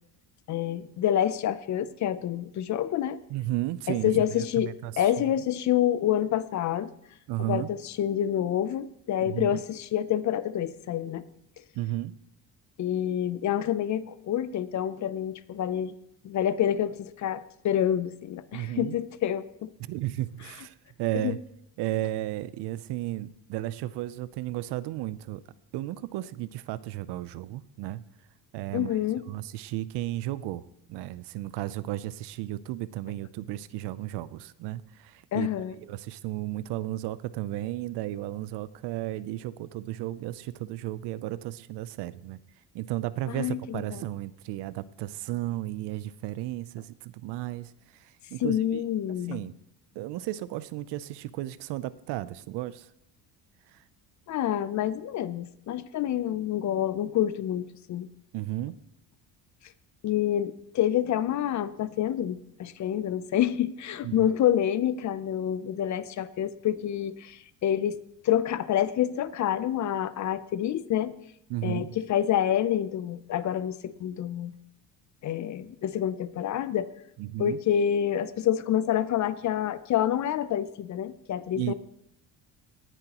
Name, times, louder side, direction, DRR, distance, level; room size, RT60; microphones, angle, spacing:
voice 1, 0.5-3.2 3.9-6.9 7.5-11.2 12.8-16.0 16.2-19.7 21.2-21.4 28.7-29.3 35.3-35.8 43.3-44.0 48.4-49.4 54.3-58.1 60.0-68.0 68.2-71.1 71.6-74.5 75.2-76.9 77.4-81.7, left 10 dB, 45° left, 15 dB, 0.6 m, -27 dB
voice 2, 3.3-5.3 7.3-7.7 9.2-9.6 11.7-12.1 18.5-19.0 19.8-21.4 21.8-25.4 25.7-28.0 28.5-29.0 29.3-35.5 35.8-42.4 42.7-48.8 49.3-49.6 50.0-52.9 58.3-58.8 64.0-64.3 71.5-72.0 77.2-77.6 81.6-81.7, right 15 dB, 70° right, 17 dB, 0.6 m, -34 dB
18.0 x 10.0 x 2.9 m, 0.77 s
cardioid pair, 130°, 42 cm